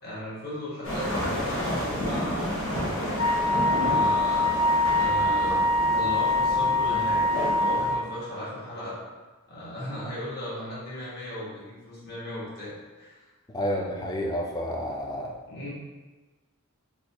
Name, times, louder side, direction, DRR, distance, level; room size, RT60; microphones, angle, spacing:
voice 1, 0.0-2.5 3.3-9.0 9.5-13.2 13.6-14.0 15.5-15.7, left 1 dB, 45° left, -9 dB, 1.3 m, -36 dB
sound 1, 0.8-7.9, equal, 70° left, 1.0 m, -31 dB
Wind instrument woodwind instrument, 3.2-8.0, left 1 dB, 85° left, 0.6 m, -24 dB
voice 2, 13.5-15.3, equal, 15° left, 0 dB, 0.3 m, -30 dB
4.1 x 2.3 x 2.8 m, 1.3 s
head